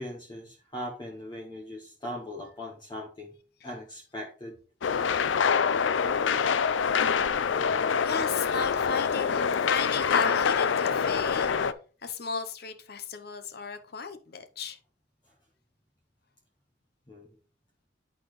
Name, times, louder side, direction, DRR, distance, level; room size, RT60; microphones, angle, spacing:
voice 1, 0.0-3.4 3.6-4.6 17.1-17.3, left 1 dB, 25° left, 1.3 m, -39 dB
sound 1, 4.8-11.7, left 6 dB, 90° left, 0.5 m, -25 dB
voice 2, 8.0-11.5 12.0-14.8, left 5 dB, 60° left, 0.9 m, -35 dB
11.0 x 4.3 x 3.2 m
head